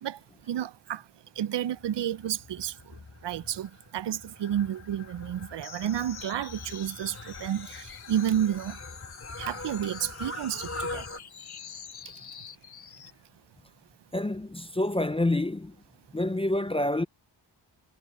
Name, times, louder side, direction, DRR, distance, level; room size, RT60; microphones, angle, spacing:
voice 1, 0.0-8.8 9.4-11.2 12.0-12.3, right 10 dB, 70° right, 0.6 m, -31 dB
Fowl, 1.8-11.2, left 2 dB, 35° left, 3.4 m, -43 dB
sound 1, 5.6-13.2, left 8 dB, 55° left, 1.1 m, -46 dB
voice 2, 14.1-15.8 16.1-17.0, left 1 dB, 15° left, 0.4 m, -27 dB
wide cardioid pair, 160°, 44 cm